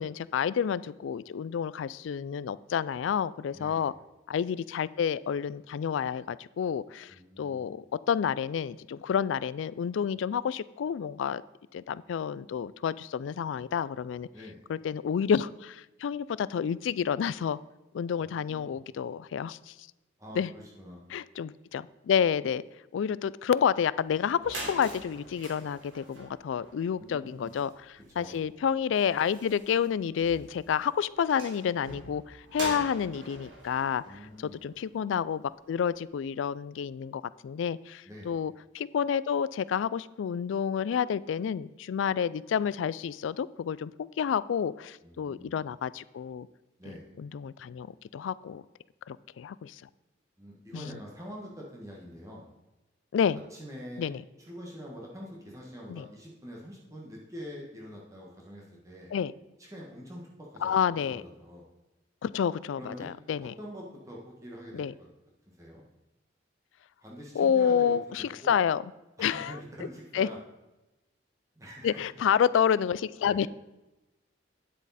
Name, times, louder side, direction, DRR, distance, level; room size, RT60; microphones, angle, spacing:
voice 1, 0.0-3.9 4.3-7.1 7.4-11.4 11.7-14.3 14.7-17.6 17.9-19.7 20.3-20.5 21.1-22.6 22.9-27.7 28.2-35.4 35.7-46.5 47.2-47.9 48.1-48.6 49.1-49.8 50.7-50.9 53.1-53.4 54.0-54.2 55.9-56.0 59.1-59.3 60.6-61.2 62.2-63.5 64.7-64.9 67.4-68.8 69.2-69.5 70.1-70.3 71.8-73.5, left 7 dB, 80° left, 19 dB, 0.3 m, -29 dB
voice 2, 3.5-3.9 7.1-7.7 14.3-14.6 18.2-18.8 20.2-21.0 27.0-27.5 28.0-28.4 32.5-32.9 34.0-34.6 38.0-38.3 45.0-45.5 46.8-47.1 50.4-52.5 53.5-59.1 59.6-61.7 62.8-63.1 63.4-65.1 65.5-65.8 67.0-68.6 69.2-70.4 71.6-72.0 73.2-73.5, equal, 15° right, -3 dB, 1.4 m, -45 dB
sound 1, 24.0-24.1 24.3-35.1, right 1 dB, 85° right, 3.1 m, -44 dB
9.6 x 8.1 x 4.1 m, 1.0 s
head